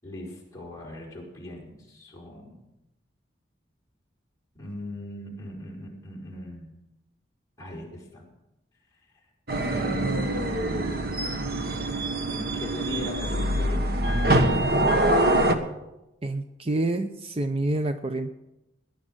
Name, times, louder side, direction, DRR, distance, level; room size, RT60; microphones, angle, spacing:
voice 1, 0.0-2.6 4.5-6.7 7.6-8.3 8.9-9.1 9.6-10.7 12.3-14.3, left 1 dB, 15° left, -4 dB, 5.1 m, -39 dB
sound 1, 9.5-15.5, right 1 dB, 55° right, 1.4 m, -24 dB
voice 2, 16.2-18.3, right 2 dB, 30° right, 8 dB, 0.6 m, -28 dB
18.5 x 11.0 x 6.2 m, 0.93 s
head